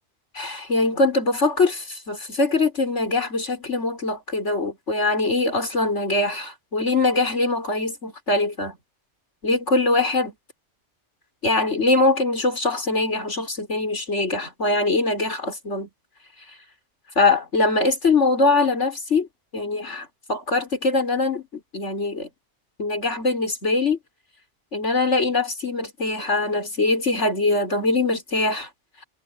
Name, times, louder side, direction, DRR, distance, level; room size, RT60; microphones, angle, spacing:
voice 1, 0.3-8.8 9.4-10.3 11.4-15.9 17.1-19.3 19.5-22.3 22.8-24.0 24.7-28.7, left 3 dB, 80° left, 5.1 m, -22 dB
omnidirectional pair, 1.2 m